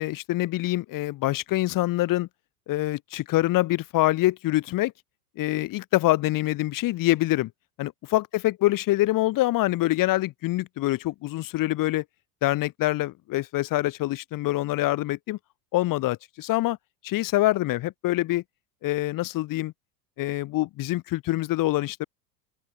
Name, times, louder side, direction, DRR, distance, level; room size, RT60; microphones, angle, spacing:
voice 1, 0.0-2.3 2.7-4.9 5.4-7.5 7.8-12.0 12.4-15.4 15.7-16.8 17.0-18.4 18.8-19.7 20.2-22.1, left 17 dB, 40° left, 1.8 m, -25 dB
open air
hypercardioid pair, 85°, 48 cm